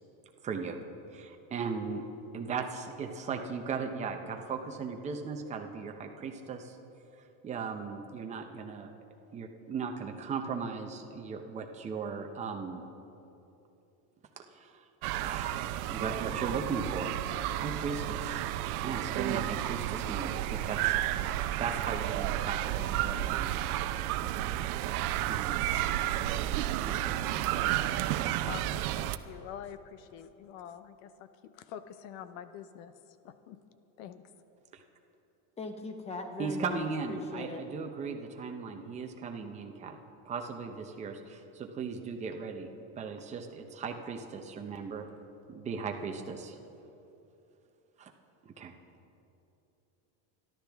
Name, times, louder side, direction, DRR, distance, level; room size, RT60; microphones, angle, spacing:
voice 1, 0.4-0.8 1.1-2.0 2.3-6.8 7.4-8.9 9.3-12.8 14.4-14.8 15.2-17.1 17.5-18.4 18.8-20.9 21.2-23.5 25.3-25.6 26.8-27.5 34.7-34.8 36.4-40.0 40.3-42.7 43.0-45.0 45.5-46.6 48.0-48.1 48.4-48.7, right 5 dB, 15° right, 4 dB, 0.7 m, -37 dB
Kids in the playground, 15.0-29.2, right 13 dB, 80° right, 0.7 m, -32 dB
voice 2, 28.4-32.9 33.2-33.6 34.0-34.3, left 9 dB, 55° left, 12 dB, 0.7 m, -46 dB
voice 3, 35.6-36.8 37.1-37.6, left 3 dB, 15° left, 5 dB, 1.0 m, -39 dB
26.5 x 12.0 x 3.5 m, 2.9 s
cardioid pair, 165°, 44 cm